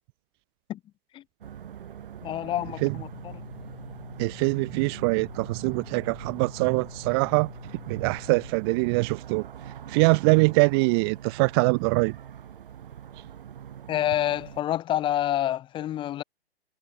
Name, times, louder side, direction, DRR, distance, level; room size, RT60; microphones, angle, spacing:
sound 1, 1.4-14.6, right 9 dB, 60° right, 7.7 m, -44 dB
voice 1, 2.2-3.4 13.9-16.2, left 12 dB, 15° left, 1.2 m, -28 dB
sound 2, 2.5-8.5, left 6 dB, 75° left, 6.6 m, -45 dB
voice 2, 4.2-7.5 7.9-9.5 9.9-12.2, right 30 dB, 25° right, 0.7 m, -23 dB
figure-of-eight pair, 130°, 31 cm